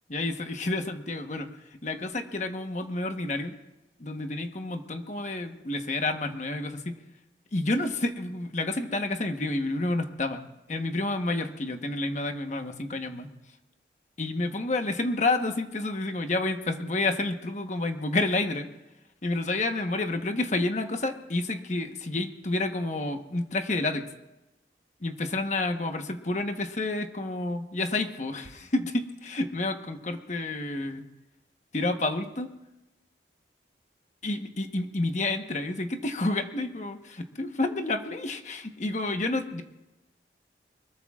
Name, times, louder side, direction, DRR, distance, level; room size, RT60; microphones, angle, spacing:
voice 1, 0.1-1.5 1.8-3.6 4.0-7.0 7.5-10.4 10.7-13.3 14.2-18.7 19.2-24.1 25.0-31.0 31.7-32.5 34.2-39.6, left 2 dB, 40° left, 6 dB, 1.1 m, -29 dB
24.0 x 21.5 x 2.4 m, 0.99 s
head